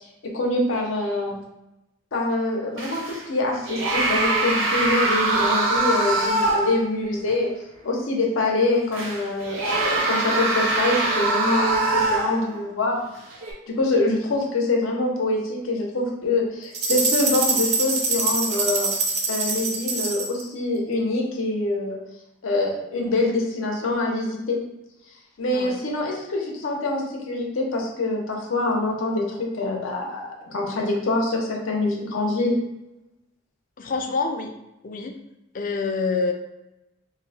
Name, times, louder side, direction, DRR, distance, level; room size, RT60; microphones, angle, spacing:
voice 1, 0.2-1.4 2.1-7.5 7.8-13.0 13.7-18.9 19.3-22.0 22.4-24.6 25.4-32.6, left 2 dB, 80° left, 0 dB, 0.7 m, -25 dB
sound 1, 2.8-3.2 3.7-6.9 7.3-7.4 8.9-12.6 13.3-13.5, right 2 dB, 75° right, 0.7 m, -23 dB
sound 2, 16.7-20.4, right 3 dB, 35° right, 0.4 m, -24 dB
voice 2, 33.8-34.5 34.8-35.1 35.5-36.3, left 4 dB, 40° left, 5 dB, 0.3 m, -26 dB
2.7 x 2.0 x 4.0 m, 0.93 s
head